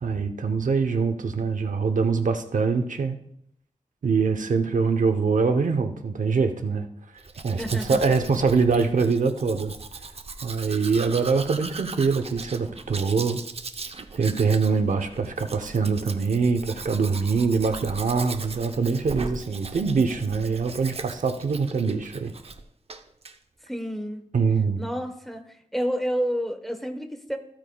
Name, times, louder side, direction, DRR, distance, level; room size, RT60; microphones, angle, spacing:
voice 1, 0.0-3.2 4.0-6.9 7.4-9.7 10.4-13.4 14.1-22.3 24.3-24.9, right 5 dB, 80° right, 7 dB, 0.8 m, -24 dB
Domestic sounds home sounds, 7.2-22.6 22.9-23.4, right 3 dB, 50° right, 0.7 m, -39 dB
voice 2, 7.6-8.0 23.6-24.2 24.8-25.4 25.7-27.4, equal, ahead, 6 dB, 1.1 m, -29 dB
14.5 x 8.8 x 2.3 m, 0.72 s
wide cardioid pair, 85°, 13 cm